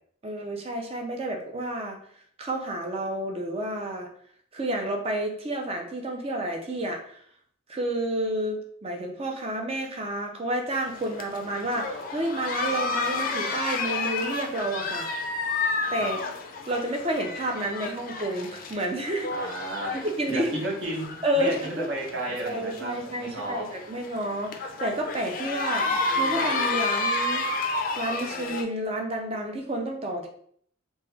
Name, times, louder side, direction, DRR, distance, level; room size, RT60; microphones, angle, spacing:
voice 1, 0.2-2.0 2.4-4.1 4.5-7.2 7.7-15.1 15.9-16.2 16.7-19.5 19.9-20.5 21.2-21.9 22.4-27.4 28.0-30.3, right 1 dB, 30° right, 2 dB, 0.4 m, -30 dB
sound 1, 10.8-28.6, left 3 dB, 40° left, 0.3 m, -31 dB
voice 2, 19.3-19.9 20.3-23.7, right 1 dB, 60° right, -3 dB, 0.9 m, -33 dB
2.9 x 2.2 x 3.2 m, 0.62 s
head